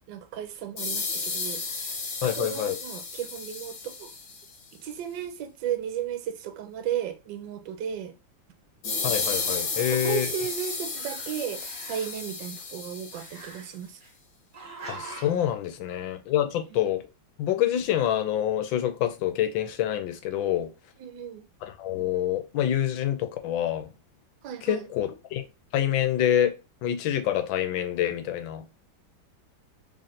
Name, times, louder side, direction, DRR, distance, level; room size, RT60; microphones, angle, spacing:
voice 1, 0.1-1.9 2.2-4.1 4.7-8.1 9.7-14.0 16.7-16.9 21.0-21.4 24.4-24.9, right 9 dB, 75° right, 1.3 m, -35 dB
sound 1, 0.8-4.6 8.8-13.6, left 4 dB, 65° left, 1.3 m, -33 dB
voice 2, 2.2-2.8 9.0-10.3 14.9-17.0 17.4-20.7 21.6-23.9 24.7-25.4 25.7-26.5 26.8-28.6, left 11 dB, 85° left, 1.4 m, -26 dB
Growling, 9.4-10.5 10.8-12.3 13.1-14.1 14.5-15.5, right 3 dB, 50° right, 1.4 m, -45 dB
3.4 x 2.5 x 4.2 m
omnidirectional pair, 2.1 m